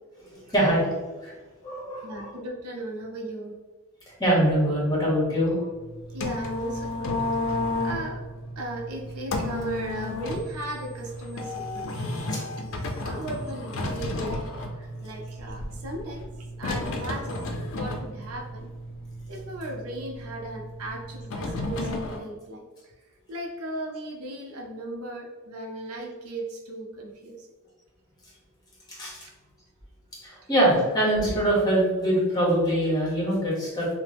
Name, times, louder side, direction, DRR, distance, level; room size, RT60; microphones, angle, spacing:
voice 1, 0.2-0.9 1.2-1.3 1.6-2.3 4.2-5.5 12.3-12.4 28.9-29.2 30.2-33.9, right 1 dB, 20° left, -5 dB, 1.0 m, -23 dB
voice 2, 2.0-3.6 6.1-7.1 7.4-8.2 8.6-12.4 12.7-14.4 14.8-16.3 16.6-17.5 17.7-18.7 19.3-22.6 23.3-27.5 29.2-29.3, right 1 dB, 85° right, 0 dB, 0.6 m, -36 dB
sound 1, 5.7-22.2, left 2 dB, 60° left, 0.4 m, -33 dB
3.0 x 2.0 x 3.3 m, 1.3 s
head